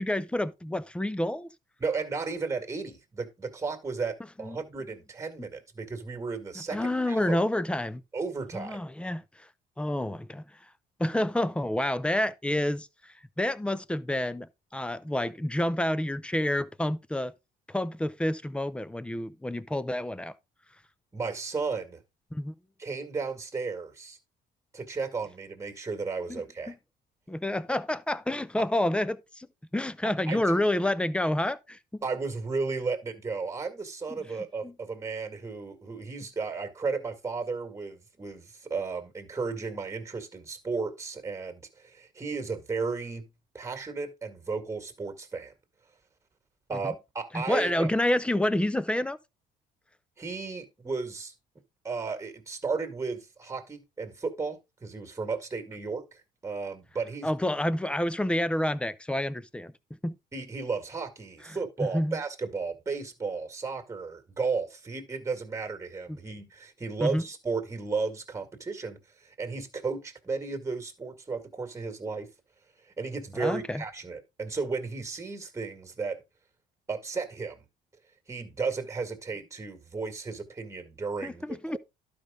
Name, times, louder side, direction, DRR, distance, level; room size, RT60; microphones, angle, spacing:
voice 1, 0.0-1.5 4.4-4.6 5.4-5.5 6.7-8.0 8.5-9.5 9.8-10.4 11.0-17.3 17.7-20.3 22.3-22.5 26.3-26.4 26.7-26.8 27.3-29.5 29.7-32.0 34.1-34.2 34.6-34.7 46.8-46.9 47.3-49.2 57.2-59.7 60.0-60.2 61.8-62.2 66.1-66.2 67.0-67.2 73.4-73.8 81.2-81.8, left 1 dB, 5° left, 0.5 m, -29 dB
voice 2, 1.8-7.4 8.1-8.8 21.1-22.0 22.8-24.2 24.7-26.7 30.3-30.4 32.0-43.3 43.5-45.5 46.7-47.9 50.2-51.3 51.8-57.3 60.3-72.3 72.8-76.2 76.9-77.7 78.3-81.4, right 4 dB, 15° right, 2.0 m, -34 dB
12.0 x 5.1 x 3.6 m
cardioid pair, 110°, 17 cm